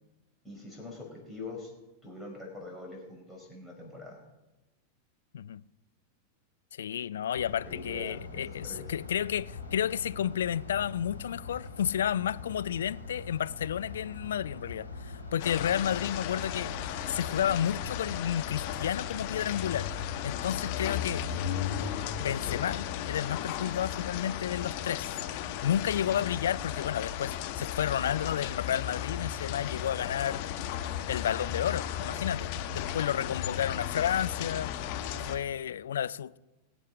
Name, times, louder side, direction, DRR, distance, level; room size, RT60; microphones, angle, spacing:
voice 1, 0.4-1.7 2.0-4.2 7.7-8.8, left 2 dB, ahead, 5.6 m, -44 dB
voice 2, 6.8-16.7 17.1-19.9 20.2-21.3 22.2-25.2 25.6-30.5 31.0-34.7 35.3-36.4, left 9 dB, 65° left, 0.4 m, -31 dB
sound 1, 7.3-22.1, left 3 dB, 85° left, 2.1 m, -43 dB
sound 2, 15.4-35.4, left 10 dB, 45° left, 1.4 m, -35 dB
22.0 x 8.1 x 5.0 m
figure-of-eight pair, 90°, 0 cm